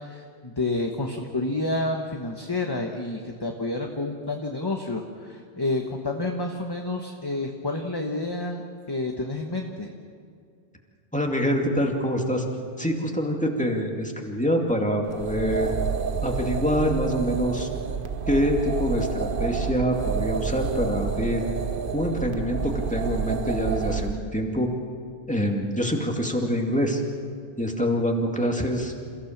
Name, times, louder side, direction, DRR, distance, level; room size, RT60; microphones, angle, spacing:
voice 1, 0.0-8.6 8.9-9.9, left 2 dB, 25° left, 2 dB, 1.2 m, -29 dB
voice 2, 11.1-12.4 12.8-15.7 16.2-17.7 18.3-21.4 21.9-24.7 25.3-27.0 27.6-28.9, equal, 5° left, 1 dB, 2.3 m, -25 dB
sound 1, 15.0-24.2, right 6 dB, 60° right, 1.1 m, -29 dB
28.0 x 16.0 x 7.4 m, 2.3 s
omnidirectional pair, 1.1 m